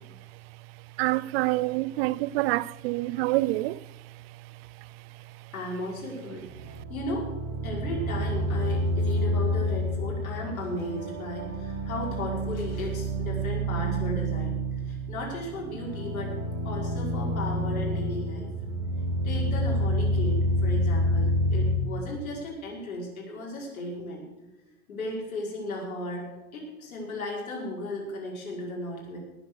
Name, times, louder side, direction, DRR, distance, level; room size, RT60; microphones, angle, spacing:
voice 1, 1.0-3.8, right 19 dB, 45° right, 0.5 m, -26 dB
voice 2, 5.5-6.5 6.9-7.3 7.6-16.4 16.6-18.5 19.2-24.2 24.9-29.2, left 1 dB, 75° left, 5.3 m, -35 dB
sound 1, 6.5-21.7, equal, 70° right, 3.4 m, -28 dB
18.5 x 7.6 x 6.7 m
hypercardioid pair, 105°, 42 cm